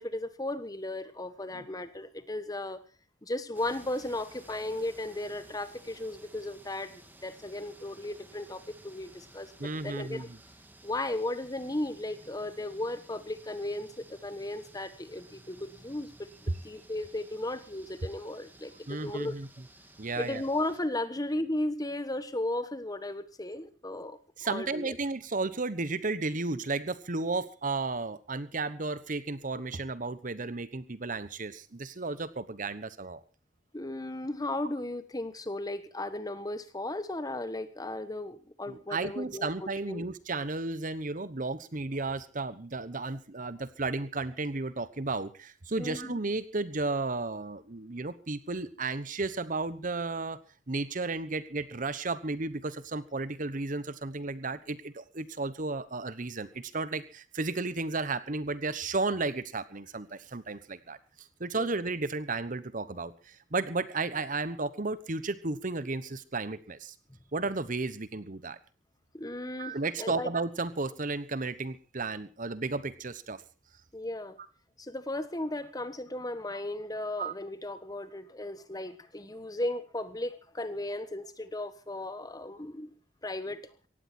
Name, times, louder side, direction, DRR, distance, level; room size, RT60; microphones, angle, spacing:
voice 1, 0.0-2.8 3.2-10.3 10.8-19.4 20.2-24.2 24.4-24.9 33.7-40.0 45.8-46.2 61.6-61.7 69.1-70.3 73.9-74.4 74.8-82.9 83.2-83.6, left 1 dB, 20° left, 12 dB, 1.3 m, -35 dB
sound 1, 3.5-20.8, right 1 dB, 10° right, 2.0 m, -55 dB
voice 2, 9.6-10.4 18.9-19.5 20.0-20.4 24.4-33.2 38.7-50.4 50.7-61.0 61.4-66.9 67.3-68.6 69.6-73.4 77.2-77.3, right 3 dB, 45° right, 15 dB, 1.1 m, -33 dB
18.0 x 15.0 x 4.4 m, 0.34 s
head